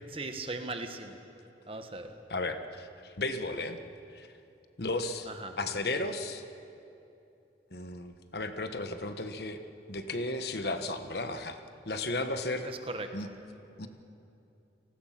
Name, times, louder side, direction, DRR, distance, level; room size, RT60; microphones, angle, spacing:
voice 1, 0.1-1.2 1.7-2.1 5.4-5.6 12.6-13.1, right 2 dB, 30° right, 7 dB, 1.4 m, -38 dB
voice 2, 2.3-3.8 4.1-4.3 4.8-5.3 5.6-6.4 7.7-9.6 9.9-11.6 11.8-12.7 13.1-13.3 13.8-13.9, left 2 dB, 60° left, 8 dB, 1.3 m, -34 dB
29.5 x 19.0 x 5.9 m, 2.7 s
head